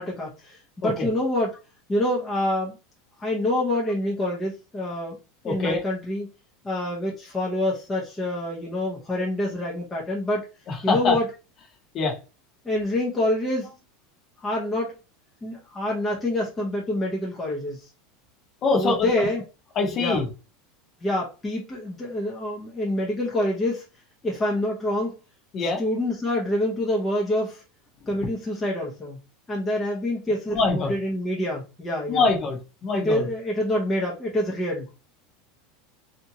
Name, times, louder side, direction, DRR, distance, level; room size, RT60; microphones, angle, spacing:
voice 1, 0.0-1.5 1.9-2.8 3.2-5.2 5.4-6.3 6.6-10.5 10.8-11.3 12.6-13.7 14.4-14.9 15.4-17.9 18.7-19.4 19.9-20.2 21.0-23.9 24.2-25.2 25.6-27.6 28.1-29.2 29.5-32.2 32.9-34.9, left 1 dB, 15° left, -4 dB, 0.8 m, -26 dB
voice 2, 5.4-5.8 10.7-11.2 11.9-12.1 18.6-19.3 19.8-20.3 25.5-25.8 30.5-30.9 32.1-33.3, left 3 dB, 35° left, 1 dB, 1.1 m, -24 dB
3.4 x 2.7 x 2.8 m, 0.30 s
supercardioid pair, 150°, 0 cm